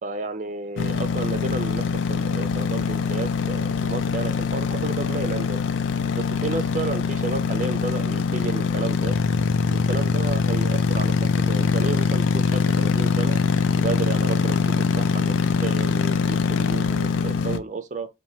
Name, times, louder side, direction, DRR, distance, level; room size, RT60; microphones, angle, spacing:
voice 1, 0.0-5.6 6.1-9.2 9.7-11.1 11.5-13.4 13.8-15.3 15.6-18.1, right 4 dB, 40° right, 0.4 m, -32 dB
sound 1, 0.8-17.6, left 5 dB, 80° left, 0.4 m, -23 dB
3.0 x 2.2 x 2.6 m
head